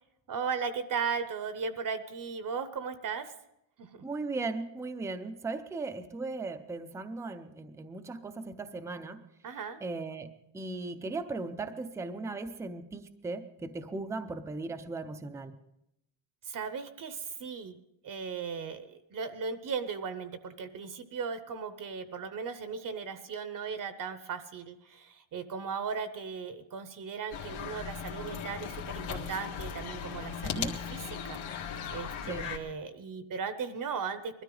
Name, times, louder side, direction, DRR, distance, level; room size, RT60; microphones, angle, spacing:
voice 1, 0.3-3.3 3.8-4.0 9.4-9.8 16.4-17.8 18.0-34.4, right 5 dB, 40° right, 11 dB, 0.8 m, -37 dB
voice 2, 4.0-9.2 9.8-15.6 30.4-30.8 32.3-32.5, right 3 dB, 5° right, 7 dB, 0.4 m, -37 dB
sound 1, 27.3-32.6, left 7 dB, 70° left, 1.9 m, -38 dB
21.0 x 13.0 x 3.8 m, 0.82 s
cardioid pair, 175°, 49 cm